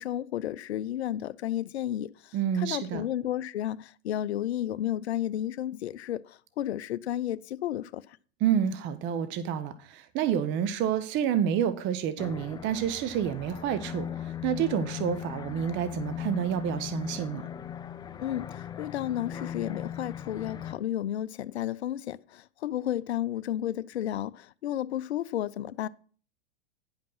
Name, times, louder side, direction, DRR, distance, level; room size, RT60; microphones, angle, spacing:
voice 1, 0.0-8.0 18.2-25.9, left 12 dB, 75° left, 0.5 m, -32 dB
voice 2, 2.3-3.0 8.4-17.5, right 9 dB, 35° right, 0.8 m, -29 dB
sound 1, 12.2-20.7, left 9 dB, 15° left, 0.4 m, -39 dB
10.0 x 5.3 x 5.5 m
hypercardioid pair, 100°, 32 cm